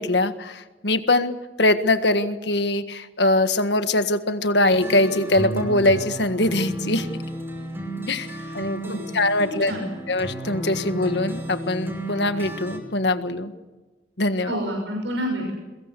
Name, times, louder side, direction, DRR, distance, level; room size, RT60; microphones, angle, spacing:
voice 1, 0.0-7.1 8.1-8.3 8.5-9.7 10.1-13.5 14.2-14.6, left 2 dB, 65° left, 10 dB, 1.7 m, -22 dB
sound 1, 4.7-12.8, right 1 dB, 15° right, 5.7 m, -33 dB
voice 2, 8.3-9.9 14.5-15.5, equal, 85° right, 0 dB, 6.6 m, -30 dB
23.0 x 21.5 x 8.3 m, 1.2 s
head